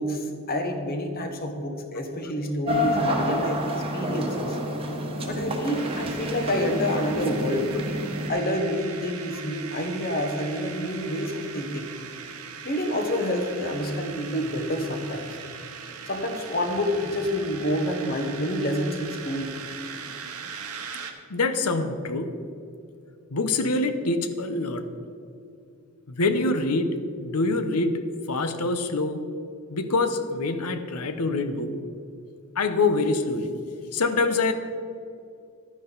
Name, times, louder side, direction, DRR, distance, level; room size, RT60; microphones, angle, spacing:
voice 1, 0.0-4.6 5.3-7.7 8.3-11.9 12.6-15.3 16.1-19.6, equal, 45° left, 5 dB, 1.2 m, -28 dB
sound 1, 2.7-8.3, equal, 25° right, 1.2 m, -28 dB
sound 2, 5.8-21.1, right 6 dB, 75° right, 1.0 m, -40 dB
voice 2, 21.3-22.4 23.3-24.9 26.1-29.4 29.7-31.7 32.6-33.5 33.9-34.5, left 3 dB, 85° left, 9 dB, 0.8 m, -25 dB
11.5 x 9.8 x 4.0 m, 2.5 s
head